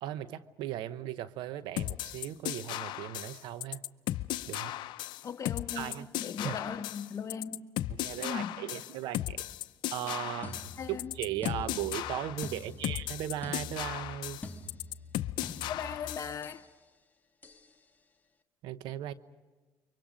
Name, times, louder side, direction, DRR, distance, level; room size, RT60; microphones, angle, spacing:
voice 1, 0.0-3.8 4.5-4.8 5.7-6.1 6.4-6.6 8.0-9.5 9.9-10.6 10.9-14.4 18.6-19.1, right 12 dB, 80° right, 0.9 m, -37 dB
sound 1, 1.8-16.4, left 14 dB, 75° left, 0.6 m, -36 dB
voice 2, 5.2-5.9 6.2-7.7 8.2-8.6 10.8-11.1 15.7-16.7, left 7 dB, 45° left, 1.5 m, -38 dB
sound 2, 10.4-16.7 17.4-17.7, left 3 dB, 20° left, 1.7 m, -46 dB
29.5 x 24.0 x 5.2 m
supercardioid pair, 85°, 8 cm